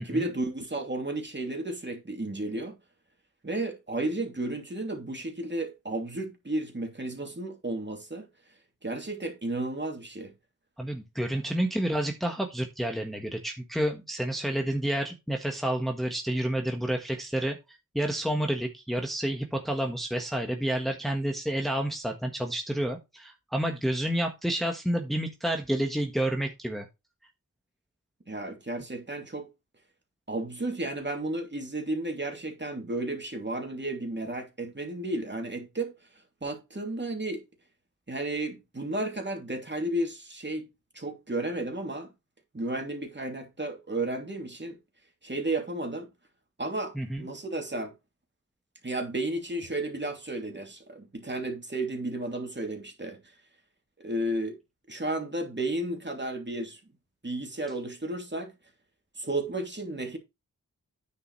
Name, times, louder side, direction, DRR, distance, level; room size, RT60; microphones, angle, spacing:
voice 1, 0.0-2.8 3.4-8.3 8.8-10.3 28.3-29.5 30.3-35.9 36.4-37.4 38.1-40.7 40.9-42.1 42.5-44.8 45.2-46.1 46.6-47.9 48.8-53.2 54.0-54.5 54.9-56.8 57.2-58.5 59.2-60.2, right 2 dB, 30° right, 2.9 m, -33 dB
voice 2, 10.8-17.6 17.9-26.9 46.9-47.2, right 1 dB, ahead, 1.5 m, -29 dB
9.5 x 6.9 x 3.2 m
wide cardioid pair, 70°, 34 cm